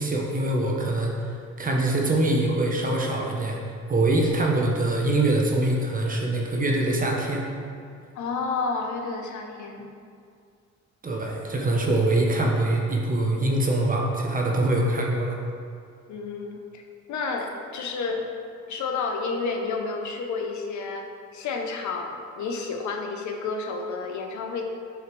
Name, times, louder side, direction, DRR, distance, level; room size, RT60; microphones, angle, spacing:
voice 1, 0.0-3.6 3.9-7.5 11.0-15.4, right 2 dB, 30° right, -1 dB, 1.0 m, -24 dB
voice 2, 8.2-9.9 16.1-16.8 17.1-18.3 18.7-21.0 21.3-24.6, left 4 dB, 70° left, 3 dB, 0.8 m, -30 dB
5.3 x 4.9 x 4.7 m, 2.3 s
cardioid pair, 90°, 30 cm